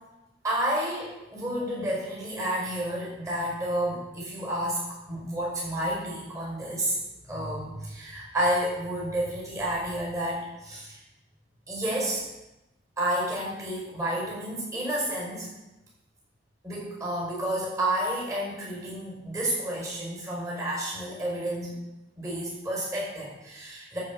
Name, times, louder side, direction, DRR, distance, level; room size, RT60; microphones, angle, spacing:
voice 1, 0.4-7.0 7.3-11.0 11.7-12.2 13.0-15.5 16.6-21.7 22.2-24.0, right 1 dB, 15° right, -4 dB, 5.4 m, -30 dB
13.5 x 5.7 x 7.2 m, 0.97 s
head